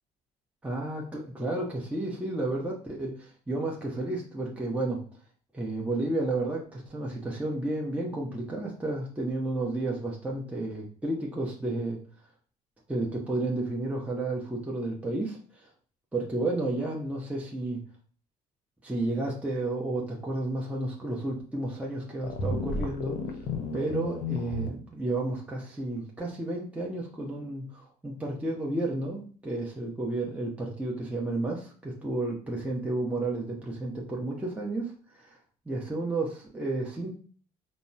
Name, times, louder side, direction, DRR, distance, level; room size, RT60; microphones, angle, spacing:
voice 1, 0.6-5.0 5.5-12.0 12.9-15.4 16.1-17.8 18.8-23.2 23.7-35.4 35.7-37.1, right 2 dB, 5° right, -3 dB, 0.8 m, -32 dB
sound 1, 22.2-24.7, left 3 dB, 50° left, 0.7 m, -32 dB
5.1 x 2.1 x 2.3 m, 0.42 s
figure-of-eight pair, 55°, 20 cm